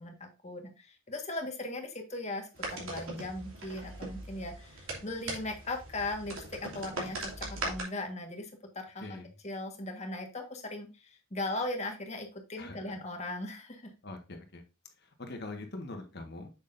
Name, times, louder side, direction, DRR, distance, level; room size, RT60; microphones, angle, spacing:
voice 1, 0.0-9.2 9.4-13.9, left 2 dB, 35° left, 4 dB, 1.6 m, -38 dB
sound 1, 2.6-7.8, right 2 dB, 80° right, 3.0 m, -40 dB
voice 2, 9.0-9.3 12.6-13.0 14.0-14.6 15.0-16.5, left 2 dB, 50° left, 4 dB, 1.5 m, -43 dB
7.2 x 6.6 x 2.6 m, 0.30 s
head